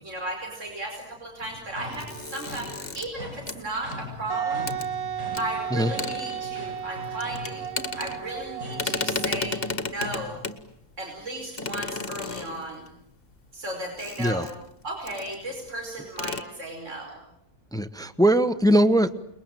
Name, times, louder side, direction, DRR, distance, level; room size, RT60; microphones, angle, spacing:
voice 1, 0.1-4.8 5.4-7.7 8.0-10.4 11.0-12.8 13.5-14.5 14.8-17.2, right 1 dB, 55° right, 1 dB, 5.4 m, -35 dB
sound 1, 1.4-10.4, left 2 dB, 15° right, 6.3 m, -42 dB
sound 2, 1.9-4.2 4.7-4.9 5.3-5.4 5.8-6.8 7.1-8.5 8.7-10.6 11.6-12.9 14.0-14.7 15.1-15.4 15.7-15.8 16.1-16.4, left 4 dB, 40° left, 1.8 m, -33 dB
Wind instrument woodwind instrument, 4.3-9.9, right 9 dB, 80° right, 1.8 m, -34 dB
voice 2, 17.7-19.1, right 1 dB, 5° left, 12 dB, 0.9 m, -21 dB
29.0 x 22.0 x 9.1 m, 0.80 s
omnidirectional pair, 1.5 m